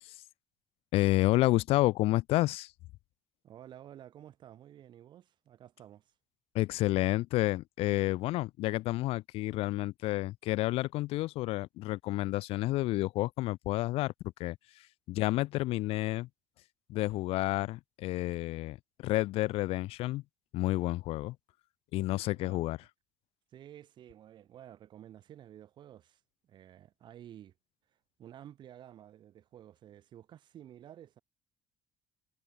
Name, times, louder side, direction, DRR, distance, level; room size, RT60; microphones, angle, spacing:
voice 1, 0.9-2.7 6.5-14.1 14.4-14.6 15.1-16.3 16.9-20.2 20.5-21.4 21.9-22.8, left 18 dB, 75° left, 0.6 m, -30 dB
voice 2, 3.4-6.1 22.4-22.6 23.5-27.5 28.2-31.2, right 11 dB, 50° right, 3.4 m, -52 dB
cardioid pair, 155°, 10 cm